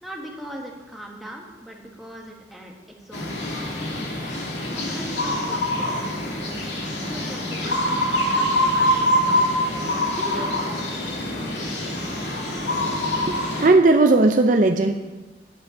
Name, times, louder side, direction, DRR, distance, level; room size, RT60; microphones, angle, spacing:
voice 1, 0.0-4.2 4.7-6.7 7.0-10.7, equal, ahead, -1 dB, 1.6 m, -40 dB
sound 1, 3.1-13.7, left 1 dB, 80° left, 2.8 m, -25 dB
voice 2, 13.6-14.9, right 2 dB, 45° right, 6 dB, 0.5 m, -16 dB
11.0 x 7.9 x 6.6 m, 1.2 s
head